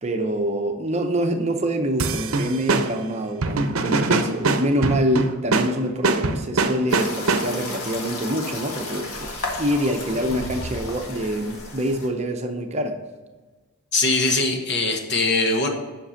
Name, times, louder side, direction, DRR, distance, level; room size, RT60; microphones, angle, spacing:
voice 1, 0.0-9.3 9.6-13.0, equal, 30° right, 5 dB, 0.7 m, -25 dB
sound 1, 2.0-7.8, right 3 dB, 70° right, 0.7 m, -24 dB
sound 2, 6.9-12.1, left 2 dB, 80° left, 1.6 m, -33 dB
voice 2, 13.9-15.7, left 2 dB, 55° left, 3 dB, 1.3 m, -21 dB
7.6 x 5.9 x 5.7 m, 1.3 s
head